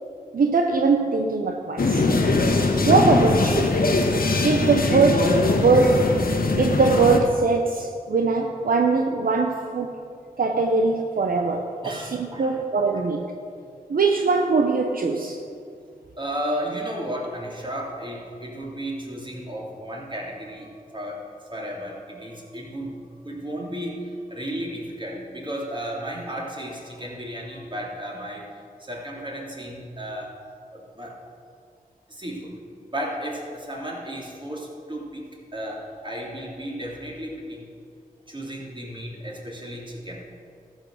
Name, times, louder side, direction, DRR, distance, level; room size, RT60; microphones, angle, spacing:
voice 1, 0.3-2.1 2.8-3.8 4.4-6.1 6.6-9.9 10.4-13.3 13.9-15.4, right 4 dB, 70° right, 0.8 m, -21 dB
sound 1, 1.8-7.2, left 3 dB, 70° left, 1.3 m, -21 dB
voice 2, 11.8-12.6 16.2-21.2 21.5-28.5 28.8-30.4 30.7-31.2 32.1-32.5 32.9-35.2 35.5-37.7 38.3-40.2, equal, 30° right, 3.3 m, -34 dB
13.5 x 6.4 x 6.4 m
cardioid pair, 50°, 16 cm